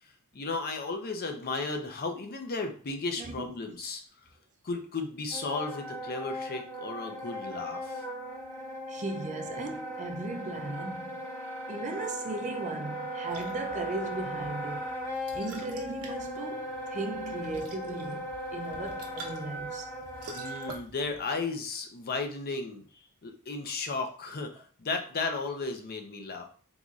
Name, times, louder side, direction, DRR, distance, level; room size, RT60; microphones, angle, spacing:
voice 1, 0.0-4.3 4.6-8.0 20.3-26.5, left 3 dB, 45° left, 0.5 m, -35 dB
voice 2, 3.2-3.7 8.9-11.2 11.7-14.9 15.3-19.9, right 2 dB, 35° right, 0.4 m, -37 dB
Wind instrument woodwind instrument, 5.3-20.8, equal, 10° left, 0.8 m, -38 dB
sound 1, 13.3-21.3, right 2 dB, 80° right, 0.8 m, -48 dB
3.8 x 3.0 x 2.4 m
head